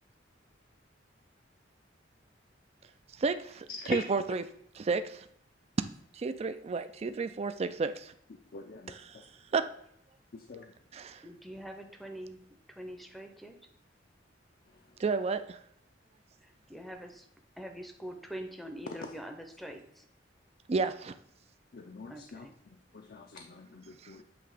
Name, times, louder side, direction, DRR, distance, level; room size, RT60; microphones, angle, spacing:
voice 1, 3.2-4.4 4.7-5.2 6.1-8.1 8.9-9.2 9.5-9.6 10.9-11.2 15.0-15.6 20.7-21.1 24.0-24.1, right 4 dB, 35° right, 10 dB, 0.4 m, -32 dB
voice 2, 8.5-8.9 10.3-10.6 21.7-22.5 22.9-24.2, left 3 dB, 55° left, 3 dB, 0.5 m, -47 dB
voice 3, 11.2-12.4 12.7-13.7 16.4-17.2 17.6-20.1 22.1-22.5, equal, ahead, 5 dB, 0.7 m, -44 dB
7.8 x 2.9 x 4.9 m, 0.70 s
head